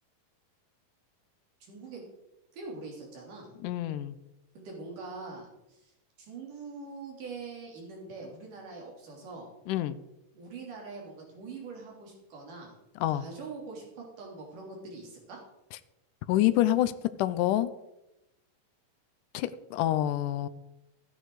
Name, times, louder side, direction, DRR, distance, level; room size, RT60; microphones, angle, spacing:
voice 1, 1.7-2.0 2.5-3.5 4.5-5.8 6.2-9.5 10.3-12.8 13.1-15.4, right 4 dB, 70° right, -2 dB, 5.0 m, -43 dB
voice 2, 3.6-4.2 9.7-10.0 13.0-13.2 16.3-16.9 17.2-17.7 19.3-20.5, left 13 dB, 80° left, 13 dB, 2.2 m, -27 dB
13.5 x 10.0 x 4.8 m, 0.90 s
omnidirectional pair, 3.8 m